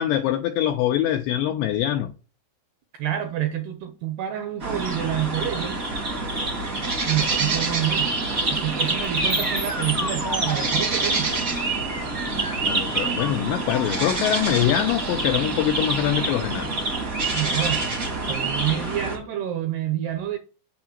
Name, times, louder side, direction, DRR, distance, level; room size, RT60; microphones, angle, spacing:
voice 1, 0.0-2.1 12.7-16.7, left 11 dB, 85° left, 2.5 m, -24 dB
voice 2, 2.9-5.8 7.0-8.1 8.5-11.4 17.3-20.4, right 12 dB, 75° right, 2.4 m, -28 dB
sound 1, 4.6-19.2, right 3 dB, 55° right, 0.9 m, -26 dB
sound 2, 9.0-16.9, equal, 25° right, 0.4 m, -34 dB
8.5 x 5.9 x 7.3 m
omnidirectional pair, 5.8 m